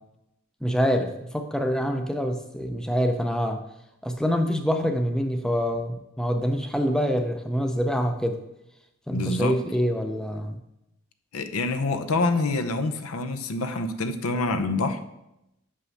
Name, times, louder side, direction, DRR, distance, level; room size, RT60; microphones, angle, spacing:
voice 1, 0.6-3.6 4.0-8.4 9.1-10.6, equal, 5° left, 5 dB, 0.5 m, -25 dB
voice 2, 9.1-9.6 11.3-15.0, left 3 dB, 80° left, 8 dB, 0.7 m, -26 dB
6.1 x 5.6 x 6.4 m, 0.87 s
head